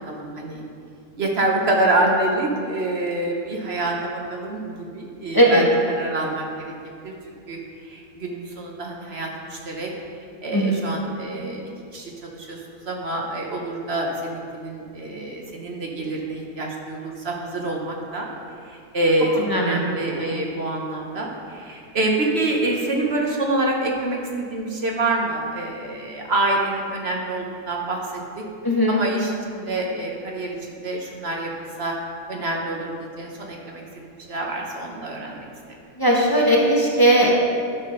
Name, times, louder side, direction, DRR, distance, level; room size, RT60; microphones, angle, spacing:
voice 1, 0.1-0.6 1.2-6.7 7.0-7.1 7.5-7.6 7.9-9.9 10.4-11.6 11.9-18.3 18.6-28.4 28.9-31.5 31.8-31.9 32.3-35.5, right 2 dB, 50° right, 0 dB, 0.9 m, -26 dB
voice 2, 10.5-10.8 19.4-19.8 20.1-20.3 28.6-29.0 36.0-37.3, right 1 dB, 15° left, -3 dB, 0.8 m, -18 dB
10.5 x 5.9 x 3.7 m, 2.4 s
omnidirectional pair, 1.7 m